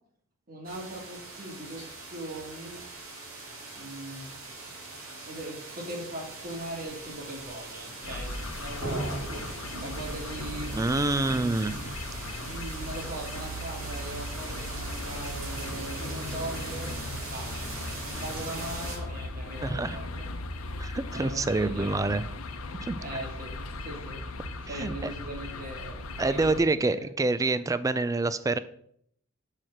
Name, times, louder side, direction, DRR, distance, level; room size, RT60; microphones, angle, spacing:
voice 1, 0.5-2.8 3.8-4.7 5.3-9.3 9.8-11.5 12.4-16.9 17.2-20.3 21.1-22.2 23.0-27.1, right 1 dB, 40° right, -1 dB, 2.1 m, -40 dB
sound 1, 0.6-19.0, right 2 dB, 90° right, 2.5 m, -40 dB
sound 2, 8.0-26.6, left 2 dB, 90° left, 0.7 m, -38 dB
voice 2, 10.8-11.7 19.6-20.0 20.8-22.2 22.8-23.0 24.7-25.1 26.2-28.6, right 3 dB, 15° right, 14 dB, 0.3 m, -27 dB
5.7 x 4.6 x 6.5 m, 0.66 s
head